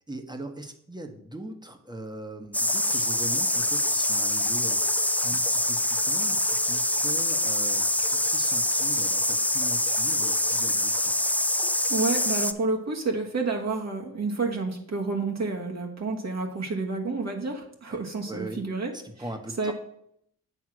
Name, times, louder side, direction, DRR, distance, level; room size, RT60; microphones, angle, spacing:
voice 1, 0.1-11.2 17.9-18.6 18.9-19.7, right 1 dB, 10° right, 5 dB, 1.3 m, -40 dB
sound 1, 2.5-12.5, left 1 dB, 5° left, 0.5 m, -25 dB
voice 2, 11.9-18.9 19.6-19.7, right 3 dB, 45° right, 0 dB, 1.4 m, -29 dB
8.0 x 3.6 x 6.1 m, 0.73 s
supercardioid pair, 50°, 37 cm